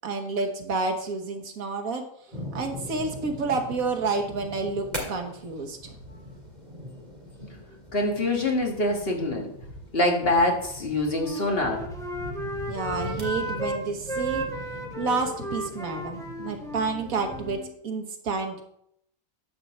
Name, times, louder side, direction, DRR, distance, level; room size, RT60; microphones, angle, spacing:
voice 1, 0.0-2.1 2.5-6.0 12.7-14.5 15.0-18.6, right 4 dB, 80° right, 5 dB, 1.6 m, -29 dB
sound 1, 2.3-17.6, equal, 30° right, 2.3 m, -41 dB
voice 2, 7.9-9.5 9.9-11.9, left 1 dB, 45° left, 1 dB, 1.7 m, -24 dB
Wind instrument woodwind instrument, 11.1-13.8 14.1-17.7, equal, 5° left, 0.9 m, -34 dB
9.9 x 4.3 x 6.9 m, 0.73 s
omnidirectional pair, 1.5 m